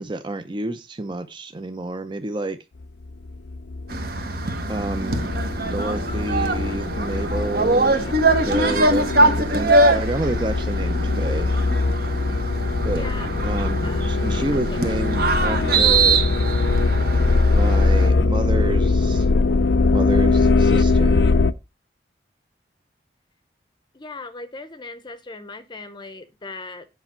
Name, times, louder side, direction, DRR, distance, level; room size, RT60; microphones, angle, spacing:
voice 1, 0.0-2.6 4.7-5.3 5.6-11.6 12.8-13.0 13.4-16.2 17.5-19.3 19.9-21.3, right 2 dB, 25° right, 0.6 m, -29 dB
sound 1, 3.3-21.5, left 3 dB, 70° left, 0.5 m, -21 dB
sound 2, 3.9-18.1, right 2 dB, 55° right, 1.4 m, -23 dB
voice 2, 13.0-13.3 13.8-14.1 14.7-14.8 23.9-26.9, left 3 dB, 25° left, 0.7 m, -38 dB
8.4 x 5.3 x 5.6 m
head